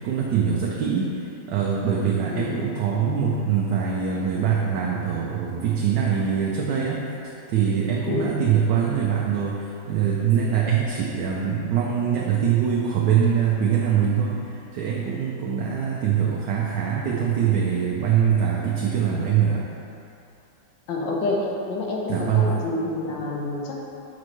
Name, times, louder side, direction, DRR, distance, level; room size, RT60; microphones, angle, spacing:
voice 1, 0.0-19.7 22.1-22.5, right 7 dB, 75° right, -3 dB, 1.2 m, -23 dB
voice 2, 20.9-21.4 21.7-23.7, left 3 dB, 85° left, -3 dB, 1.6 m, -28 dB
7.6 x 5.1 x 3.0 m, 2.8 s
omnidirectional pair, 2.0 m